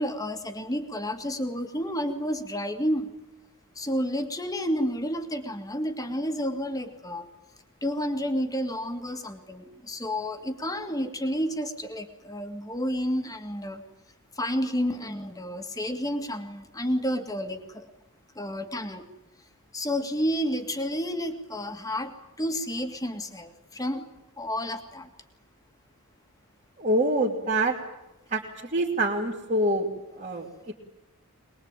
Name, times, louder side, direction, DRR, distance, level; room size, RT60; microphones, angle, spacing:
voice 1, 0.0-3.1 3.8-7.3 7.8-13.8 14.4-17.9 18.4-19.1 19.7-24.1 24.4-25.1, equal, 15° left, 6 dB, 2.1 m, -30 dB
voice 2, 26.8-27.7 28.3-28.4 28.7-30.7, right 1 dB, 35° right, -5 dB, 2.6 m, -26 dB
22.5 x 22.0 x 9.1 m, 0.95 s
head